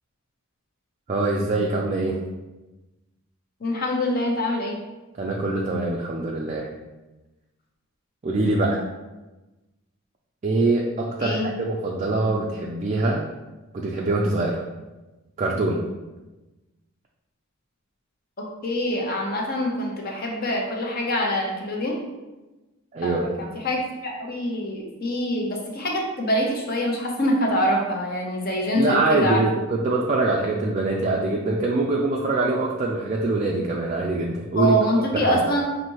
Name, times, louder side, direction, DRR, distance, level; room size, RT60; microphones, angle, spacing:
voice 1, 1.1-2.2 5.2-6.7 8.2-8.8 10.4-13.3 13.7-14.6 15.4-15.8 22.9-23.4 28.7-34.7 35.1-35.4, right 2 dB, 35° right, -2 dB, 0.3 m, -23 dB
voice 2, 3.6-4.8 11.2-11.5 18.4-22.0 23.0-29.4 34.5-35.6, equal, 40° left, 0 dB, 0.8 m, -25 dB
5.8 x 2.7 x 3.0 m, 1.1 s
head